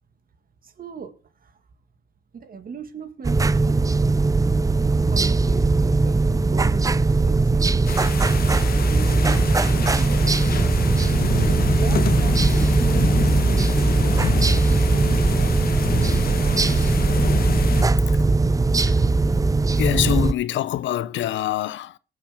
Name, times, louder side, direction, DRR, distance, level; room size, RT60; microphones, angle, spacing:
voice 1, 0.6-1.6 2.3-3.8 5.1-8.0 8.9-10.5 11.0-15.4 16.0-17.0, right 6 dB, 45° right, 2.0 m, -38 dB
sound 1, 3.2-20.3, right 3 dB, 15° right, 0.5 m, -19 dB
sound 2, 7.9-17.8, left 7 dB, 50° left, 1.4 m, -28 dB
voice 2, 19.7-22.0, left 12 dB, 70° left, 0.7 m, -25 dB
19.0 x 7.5 x 3.6 m
cardioid pair, 90°, 20 cm